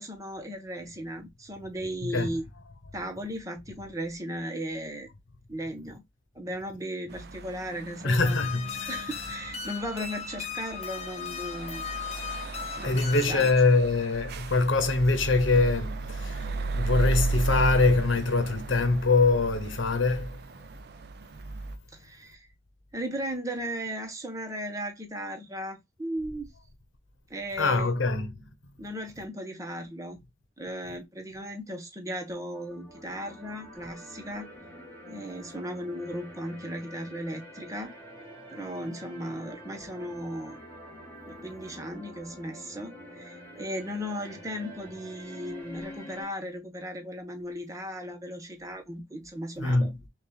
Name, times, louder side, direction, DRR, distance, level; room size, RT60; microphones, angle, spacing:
voice 1, 0.0-2.4 2.9-5.1 5.5-6.0 6.3-8.4 8.9-11.8 12.8-13.5 21.9-22.5 22.9-26.5 27.3-27.9 28.8-30.2 30.6-34.5 35.1-37.9 38.5-40.6 41.3-49.9, equal, 15° right, 0.9 m, -36 dB
voice 2, 2.0-2.3 8.0-9.0 12.8-20.4 27.6-28.5 49.6-50.0, left 3 dB, 75° left, 0.9 m, -24 dB
sound 1, 7.1-21.8, right 3 dB, 55° right, 0.4 m, -35 dB
sound 2, 8.2-13.5, left 7 dB, 35° left, 0.8 m, -37 dB
sound 3, 32.5-46.2, equal, 10° left, 1.4 m, -46 dB
5.9 x 2.4 x 2.3 m
head